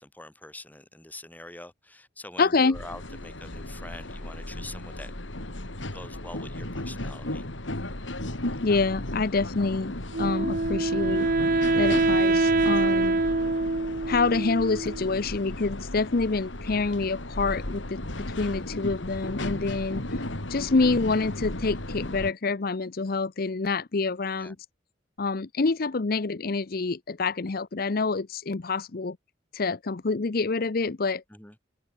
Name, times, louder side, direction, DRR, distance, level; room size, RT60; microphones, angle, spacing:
voice 1, 0.0-5.1 5.9-7.4 24.3-24.6 31.3-31.5, left 1 dB, 10° left, 2.0 m, -44 dB
voice 2, 2.4-2.8 8.6-11.3 11.7-13.2 14.1-20.2 20.5-24.6 25.2-29.2 29.5-31.2, left 3 dB, 50° left, 0.7 m, -27 dB
sound 1, 2.7-22.3, left 1 dB, 80° left, 3.4 m, -35 dB
Wind instrument woodwind instrument, 10.1-15.2, right 2 dB, 50° right, 1.1 m, -25 dB
head